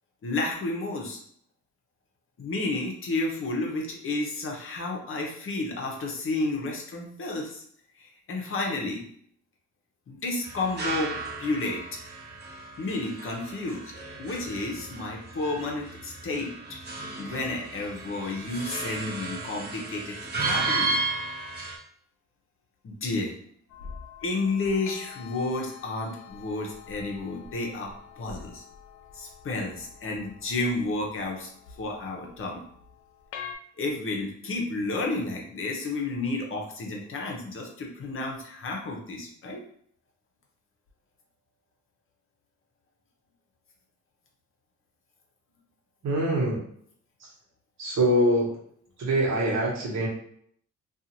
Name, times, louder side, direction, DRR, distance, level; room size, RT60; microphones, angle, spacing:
voice 1, 0.2-1.2 2.4-7.6 8.0-9.0 10.1-11.8 12.8-13.8 14.2-16.5 17.2-21.0 22.8-23.3 24.2-28.6 29.1-31.5 31.8-32.6 33.8-39.6, left 2 dB, 45° left, 0 dB, 0.7 m, -31 dB
sound 1, 10.4-21.8, right 3 dB, 35° right, 0.7 m, -34 dB
sound 2, 23.7-33.6, left 7 dB, 80° left, 0.5 m, -46 dB
voice 2, 46.0-46.6 47.2-47.3 47.8-48.6 49.0-50.1, right 1 dB, 65° right, -3 dB, 1.1 m, -24 dB
2.5 x 2.4 x 2.8 m, 0.65 s
cardioid pair, 90°, 30 cm